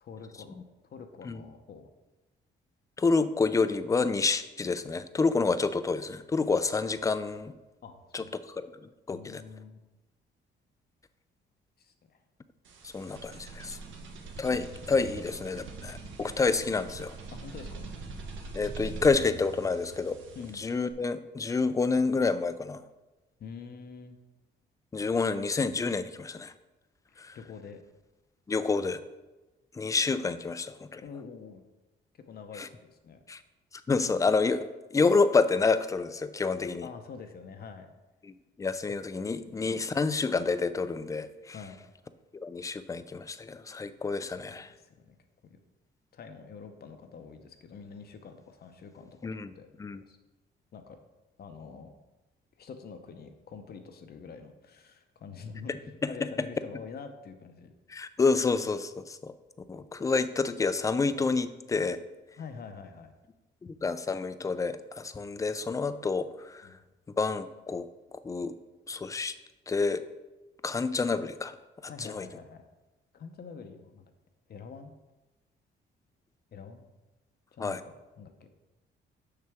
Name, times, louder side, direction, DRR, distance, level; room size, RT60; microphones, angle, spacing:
voice 1, 0.0-1.9 7.8-8.3 9.1-9.8 11.8-12.2 14.5-14.7 15.1-15.5 16.2-16.4 17.3-17.9 20.3-20.6 23.4-24.2 27.1-27.8 31.0-31.6 32.1-33.2 36.8-37.9 39.5-39.8 41.5-41.8 44.4-45.1 45.4-45.6 46.1-49.7 50.1-50.2 50.7-51.0 51.4-51.9 52.6-57.7 62.4-63.1 66.6-66.8 71.9-72.6 73.1-74.1 74.5-74.9 76.5-76.9 77.5-78.5, left 5 dB, 50° left, 6 dB, 0.7 m, -46 dB
voice 2, 3.0-7.5 8.1-8.7 9.1-9.4 12.8-13.8 14.4-17.1 18.5-20.2 20.5-22.8 24.9-26.5 27.2-27.4 28.5-29.0 29.8-31.0 32.6-32.7 33.3-33.4 33.9-36.9 38.2-41.5 42.4-44.7 49.2-49.5 49.8-50.0 56.0-56.3 57.9-59.3 59.7-62.0 63.6-66.7 67.2-67.9 68.2-68.5 68.9-69.3 69.7-70.0 70.6-71.5 72.0-72.2 77.6-77.8, left 4 dB, 15° left, 13 dB, 0.3 m, -28 dB
sound 1, 12.6-20.9, right 4 dB, 75° right, 1.0 m, -43 dB
6.5 x 5.8 x 3.5 m, 1.1 s
cardioid pair, 90°, 20 cm